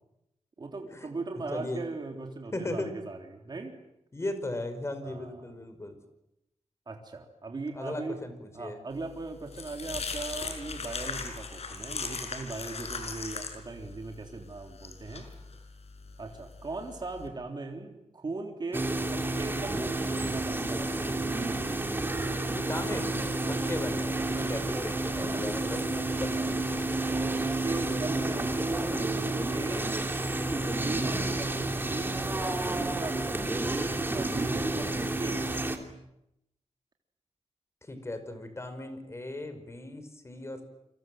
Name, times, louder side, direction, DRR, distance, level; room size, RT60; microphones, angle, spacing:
voice 1, 0.6-3.7 5.0-5.5 6.9-8.2 8.5-15.3 16.2-21.1 23.4-23.7 24.4-24.6 25.2-25.5 26.3-26.6 27.1-29.9 30.6-32.2 32.8-35.4, right 3 dB, 40° right, 3 dB, 3.6 m, -38 dB
voice 2, 1.5-1.8 2.5-2.9 4.1-6.0 7.7-8.8 22.5-26.8 37.8-40.7, left 2 dB, 25° left, 9 dB, 5.4 m, -37 dB
sound 1, 9.0-17.3, left 4 dB, 65° left, 5.7 m, -39 dB
sound 2, 18.7-35.8, right 2 dB, 20° right, 3.3 m, -30 dB
29.0 x 25.0 x 7.9 m, 0.83 s
wide cardioid pair, 120°, 11 cm